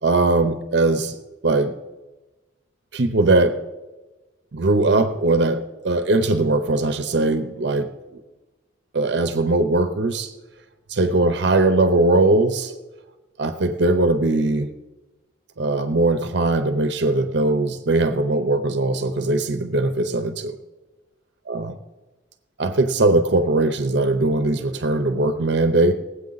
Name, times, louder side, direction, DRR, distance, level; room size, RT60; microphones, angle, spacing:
voice 1, 0.0-1.2 1.4-1.7 2.9-3.6 4.5-8.2 8.9-10.3 10.9-12.7 13.4-14.7 15.6-20.5 21.5-21.7 22.6-25.9, right 2 dB, 60° right, 8 dB, 0.7 m, -20 dB
19.5 x 8.0 x 4.0 m, 1.2 s
head